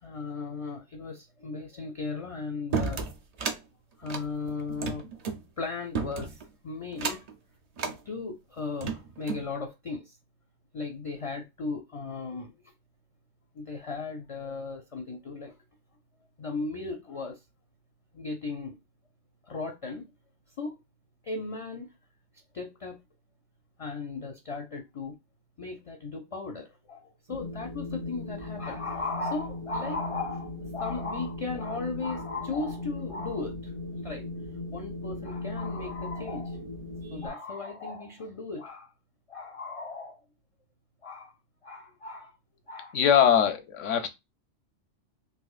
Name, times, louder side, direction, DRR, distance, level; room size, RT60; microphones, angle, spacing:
voice 1, 0.0-3.1 4.0-5.1 5.6-7.3 7.8-10.2 10.7-12.5 13.5-15.6 16.4-17.4 18.1-18.8 19.4-20.1 20.6-20.8 21.2-21.9 22.5-23.0 23.8-25.2 25.6-34.2 34.7-36.6 37.0-38.9 39.3-40.2 41.0-41.3 41.6-42.3 42.7-43.3 43.9-44.0, left 3 dB, 50° left, 0.4 m, -36 dB
sound 1, 2.7-3.6 4.0-5.4 5.9-6.5 6.9-7.3 7.8-8.0 8.6-9.5, right 5 dB, 50° right, 0.5 m, -32 dB
Wind, 27.3-37.3, left 2 dB, 90° right, 1.1 m, -38 dB
voice 2, 42.9-44.1, left 8 dB, 85° left, 1.0 m, -22 dB
4.0 x 2.6 x 2.4 m
omnidirectional pair, 1.2 m